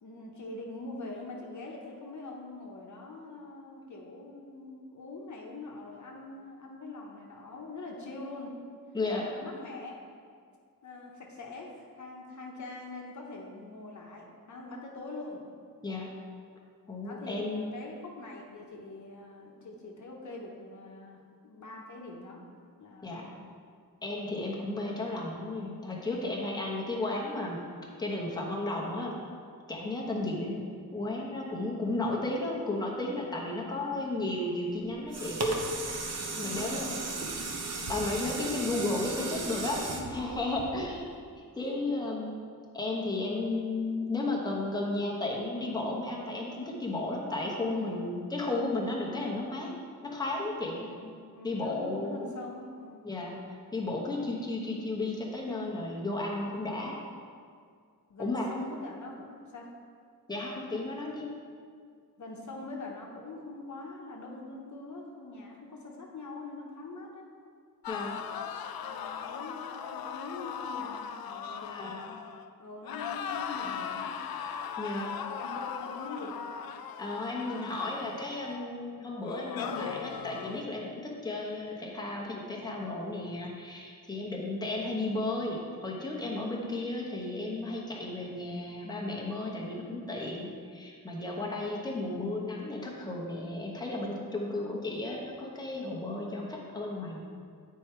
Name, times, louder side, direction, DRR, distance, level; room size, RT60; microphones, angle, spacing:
voice 1, 0.0-8.5 9.2-10.0 10.8-15.4 17.0-22.4 22.8-23.4 30.0-30.3 33.5-34.1 36.2-37.1 39.4-39.5 40.0-40.1 40.7-41.0 47.5-48.1 50.7-53.0 56.4-56.9 58.1-59.7 62.2-67.2 68.8-72.0 72.6-74.2 75.3-76.4, left 2 dB, 55° left, -1 dB, 1.0 m, -44 dB
voice 2, 8.9-9.3 15.8-16.1 16.9-17.7 23.0-23.2 24.0-27.6 28.0-29.2 29.7-30.6 30.9-35.4 36.4-37.0 37.9-39.8 40.1-41.1 41.5-42.3 42.7-49.7 50.0-50.8 51.4-52.3 53.0-53.4 53.7-57.0 58.2-58.5 60.3-61.3 67.9-68.2 71.6-72.1 74.8-75.2 77.0-97.2, left 2 dB, 10° left, -3 dB, 0.9 m, -34 dB
sound 1, 34.8-41.1 41.6-41.7, right 2 dB, 45° right, 0.8 m, -35 dB
sound 2, 67.8-72.5 72.8-78.7 79.2-80.6, left 7 dB, 80° left, 0.5 m, -38 dB
9.1 x 4.7 x 4.4 m, 2.1 s
wide cardioid pair, 160°, 35 cm